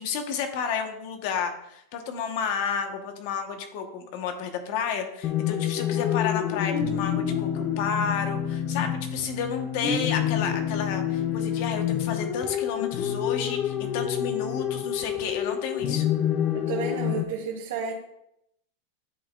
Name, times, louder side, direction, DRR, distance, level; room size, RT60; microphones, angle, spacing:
voice 1, 0.0-16.1, left 6 dB, 50° left, 5 dB, 1.2 m, -31 dB
sound 1, 5.2-17.2, left 9 dB, 35° left, 0.5 m, -28 dB
voice 2, 16.7-17.9, right 6 dB, 75° right, -7 dB, 2.1 m, -31 dB
12.0 x 4.1 x 2.4 m, 0.79 s
supercardioid pair, 155°, 0 cm